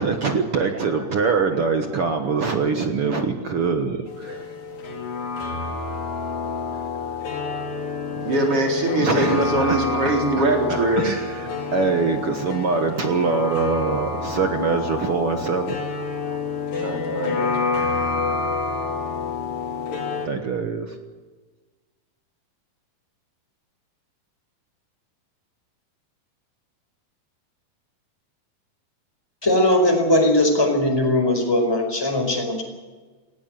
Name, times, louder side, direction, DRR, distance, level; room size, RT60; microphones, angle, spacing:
voice 1, 0.0-3.9 4.2-4.4 9.0-9.8 10.7-16.4 19.6-21.0, right 5 dB, 55° right, 5 dB, 1.6 m, -24 dB
sound 1, 4.1-20.3, left 4 dB, 65° left, 4.4 m, -28 dB
voice 2, 8.3-11.1 16.7-17.8, right 1 dB, 40° right, 1 dB, 4.7 m, -22 dB
voice 3, 29.4-32.6, left 1 dB, 5° left, 3 dB, 4.6 m, -19 dB
18.5 x 17.5 x 9.2 m, 1.3 s
omnidirectional pair, 4.2 m